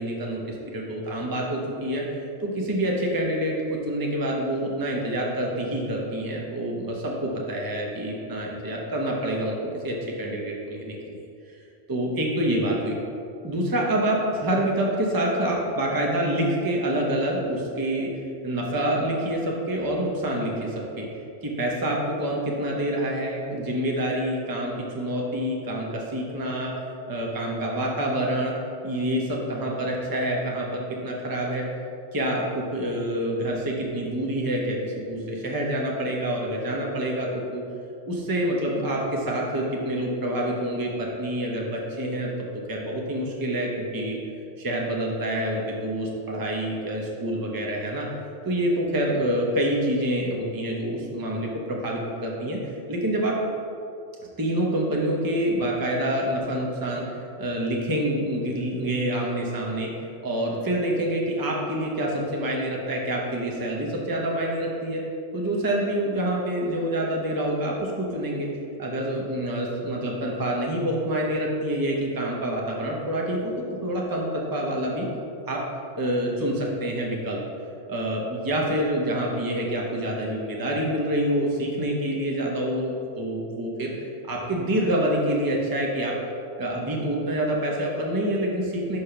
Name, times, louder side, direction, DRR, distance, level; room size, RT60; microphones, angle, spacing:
voice 1, 0.0-2.0 2.4-11.2 11.9-13.0 13.4-21.1 21.4-26.7 27.1-28.5 28.8-31.6 32.1-37.6 38.1-42.3 42.7-44.2 44.6-48.1 48.4-53.4 54.4-59.9 60.2-65.0 65.3-68.5 68.8-73.5 73.8-75.1 75.5-75.6 76.0-77.4 77.9-86.2 86.6-89.0, right 1 dB, 20° right, -2 dB, 0.8 m, -27 dB
5.6 x 5.1 x 5.8 m, 2.6 s
omnidirectional pair, 1.2 m